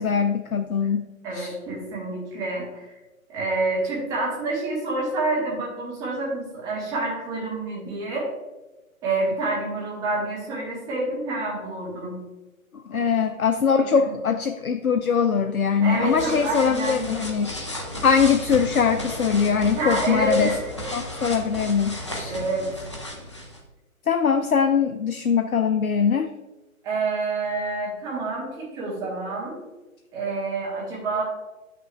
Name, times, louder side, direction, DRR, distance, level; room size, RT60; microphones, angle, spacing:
voice 1, 0.0-1.1 1.3-1.5 12.9-17.5 18.0-20.5 20.9-22.4 24.1-26.3, left 6 dB, 90° left, 8 dB, 0.5 m, -22 dB
voice 2, 1.2-2.8 3.3-8.3 9.0-12.1 13.8-14.1 15.8-17.2 19.7-20.7 22.3-22.7 26.8-29.6 30.1-31.2, right 2 dB, 10° right, -5 dB, 1.0 m, -28 dB
sound 1, 15.8-23.6, left 1 dB, 20° left, 0.4 m, -34 dB
8.0 x 5.9 x 2.3 m, 1.1 s
figure-of-eight pair, 135°, 42 cm